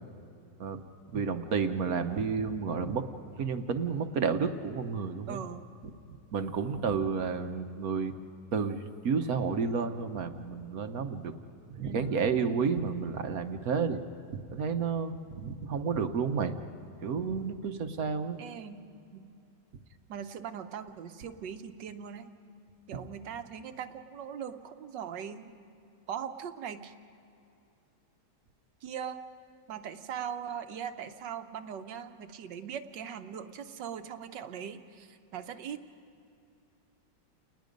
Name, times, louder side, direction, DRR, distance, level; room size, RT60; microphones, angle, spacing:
voice 1, 1.1-3.0 3.4-5.4 6.1-8.2 8.5-11.3 11.7-14.0 14.3-16.6 17.0-18.4, right 5 dB, 55° right, 8 dB, 1.3 m, -31 dB
voice 2, 5.3-5.6 11.8-12.2 18.4-18.8 19.1-19.3 20.1-22.3 22.9-25.5 26.1-26.9 28.8-29.2 29.7-35.8, right 8 dB, 75° right, 9 dB, 1.5 m, -40 dB
29.5 x 20.0 x 5.2 m, 2.6 s
omnidirectional pair, 2.0 m